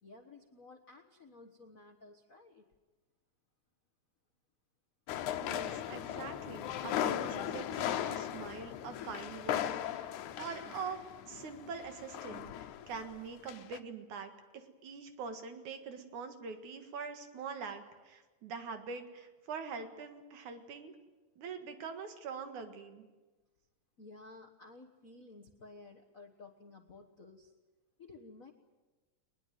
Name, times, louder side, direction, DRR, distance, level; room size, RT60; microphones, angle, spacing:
voice 1, 0.0-2.7 24.0-27.5 28.0-28.5, left 3 dB, 50° left, 1 dB, 1.0 m, -54 dB
sound 1, 5.1-13.2 13.5-13.8, left 11 dB, 85° left, 2.4 m, -38 dB
voice 2, 5.4-21.0 21.4-23.1, right 5 dB, 80° right, 7 dB, 3.2 m, -44 dB
21.0 x 21.0 x 9.3 m, 1.2 s
omnidirectional pair, 3.4 m